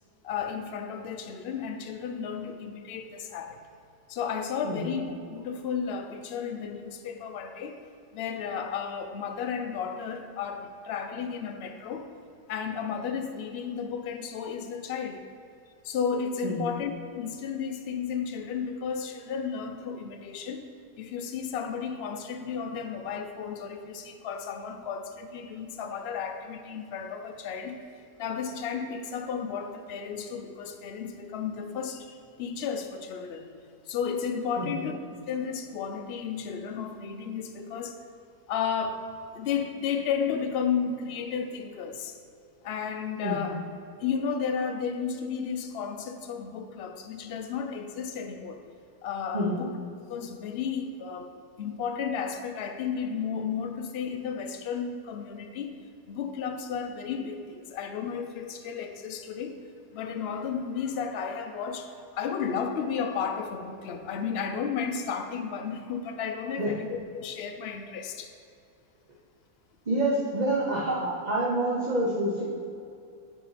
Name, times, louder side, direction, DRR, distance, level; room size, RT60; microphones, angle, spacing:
voice 1, 0.2-3.6 4.1-7.8 8.1-12.1 12.5-15.3 15.8-20.7 21.0-27.8 28.2-33.5 33.9-35.0 35.3-38.1 38.5-39.1 39.3-42.2 42.6-43.6 44.0-48.6 49.0-49.7 50.1-51.3 51.6-55.7 56.1-59.6 59.9-68.3, left 6 dB, 70° left, 6 dB, 0.6 m, -33 dB
voice 2, 16.4-16.8 34.6-34.8 43.2-43.5 49.3-49.6 66.6-66.7 69.9-72.4, right 1 dB, 35° right, -6 dB, 0.8 m, -27 dB
8.9 x 4.6 x 4.1 m, 2.5 s
omnidirectional pair, 1.7 m